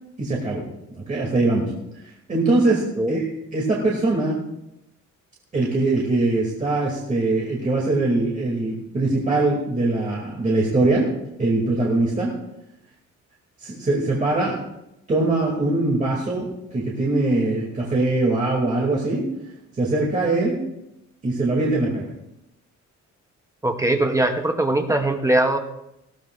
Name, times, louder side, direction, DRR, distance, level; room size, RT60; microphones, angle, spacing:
voice 1, 0.2-0.6 0.9-1.7 2.0-3.3 3.5-4.4 5.5-11.1 11.4-12.3 13.6-14.6 15.1-19.3 19.7-20.6 21.2-22.1, right 2 dB, 25° right, -3 dB, 2.3 m, -22 dB
voice 2, 23.6-25.6, right 1 dB, 10° right, 5 dB, 0.6 m, -21 dB
19.5 x 15.5 x 2.4 m, 0.86 s
cardioid pair, 175°, 30 cm